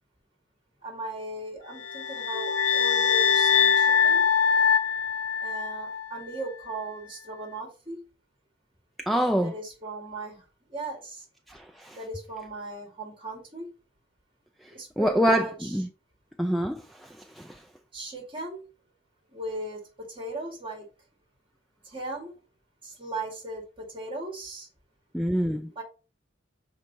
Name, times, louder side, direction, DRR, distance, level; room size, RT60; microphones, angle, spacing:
voice 1, 0.8-4.3 5.4-8.0 9.4-10.4 10.7-11.3 11.9-13.7 14.7-15.8 17.9-18.6 19.3-20.9 21.8-22.3 22.8-24.7 25.7-25.8, right 2 dB, 30° right, 2.5 m, -37 dB
sound 1, 1.8-6.1, left 7 dB, 65° left, 0.6 m, -23 dB
voice 2, 9.0-9.5 11.5-11.6 15.0-15.9 16.4-16.8 25.1-25.7, equal, ahead, 0.4 m, -24 dB
6.4 x 4.6 x 4.3 m
head